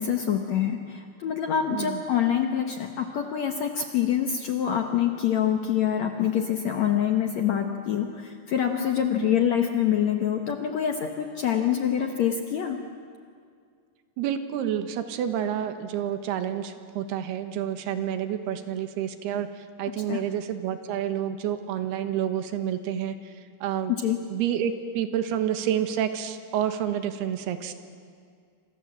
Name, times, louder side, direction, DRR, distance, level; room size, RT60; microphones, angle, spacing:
voice 1, 0.0-12.8 20.1-20.2 24.0-24.2, left 9 dB, 65° left, 4 dB, 1.8 m, -25 dB
voice 2, 1.7-2.0 9.2-9.4 14.2-23.9 24.3-27.7, right 9 dB, 80° right, 9 dB, 3.3 m, -29 dB
28.0 x 26.0 x 7.6 m, 2.2 s
omnidirectional pair, 4.6 m